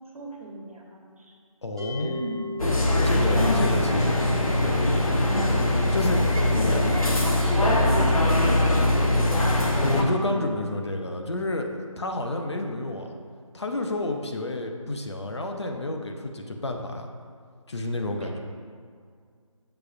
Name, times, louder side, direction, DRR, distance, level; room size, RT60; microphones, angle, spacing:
voice 1, 0.1-1.3 2.0-2.5 3.3-3.5 6.3-9.6 10.1-10.5 18.2-18.4, right 1 dB, 85° right, -1 dB, 1.3 m, -36 dB
voice 2, 1.6-2.2 3.0-5.3 5.9-6.8 9.8-13.1 13.5-17.1 17.7-18.4, left 2 dB, 50° left, 3 dB, 0.6 m, -30 dB
sound 1, 1.8-12.9, left 2 dB, 10° right, 0.5 m, -41 dB
sound 2, 2.6-10.0, left 1 dB, 85° left, 1.0 m, -22 dB
6.7 x 5.5 x 2.5 m, 2.1 s
figure-of-eight pair, 175°, 18 cm